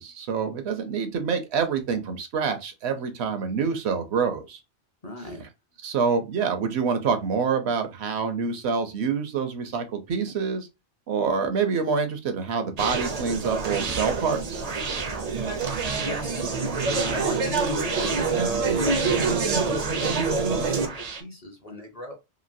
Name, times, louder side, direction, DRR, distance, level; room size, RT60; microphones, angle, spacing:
voice 1, 0.0-4.6 5.4-5.5 5.8-10.7 11.1-14.6, right 5 dB, 70° right, 0.8 m, -26 dB
voice 2, 5.0-5.4 15.8-16.5 16.9-22.1, left 1 dB, 40° left, 0.6 m, -37 dB
Conversation, 12.8-21.2, right 4 dB, 50° right, 0.5 m, -26 dB
3.0 x 2.6 x 2.6 m
omnidirectional pair, 1.2 m